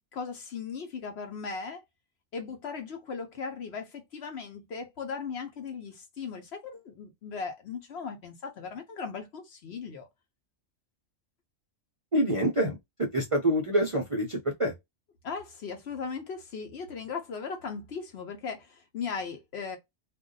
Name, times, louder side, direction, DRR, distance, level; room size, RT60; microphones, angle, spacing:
voice 1, 0.1-1.8 2.3-10.1 15.2-19.8, left 5 dB, 60° left, 0.9 m, -38 dB
voice 2, 12.1-14.7, right 1 dB, 40° right, 0.5 m, -26 dB
2.6 x 2.2 x 3.7 m
omnidirectional pair, 1.3 m